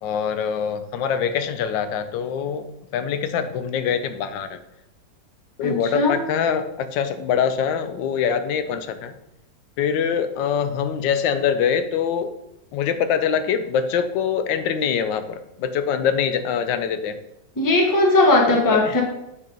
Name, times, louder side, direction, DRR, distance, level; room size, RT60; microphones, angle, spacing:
voice 1, 0.0-2.7 2.9-4.6 5.6-9.1 9.8-12.3 12.7-17.2 18.7-19.0, left 7 dB, 85° left, 10 dB, 1.3 m, -24 dB
voice 2, 5.6-6.2 17.6-19.0, left 2 dB, 15° left, 0 dB, 0.7 m, -18 dB
8.2 x 3.8 x 3.8 m, 0.84 s
omnidirectional pair, 1.9 m